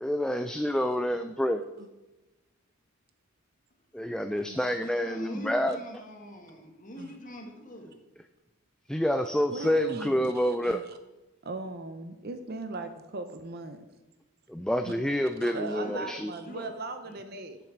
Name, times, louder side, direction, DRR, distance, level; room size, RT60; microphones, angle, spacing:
voice 1, 0.0-1.7 3.9-5.8 8.9-10.8 14.5-16.3, equal, 5° left, 8 dB, 0.3 m, -28 dB
voice 2, 4.8-8.0 14.7-15.4 15.7-16.1 16.4-16.7 17.0-17.2, left 1 dB, 40° left, 2 dB, 1.9 m, -44 dB
voice 3, 9.5-11.0 11.4-14.0 14.9-15.0 15.4-17.6, right 2 dB, 50° right, 8 dB, 0.7 m, -39 dB
8.4 x 7.2 x 7.2 m, 1.1 s
head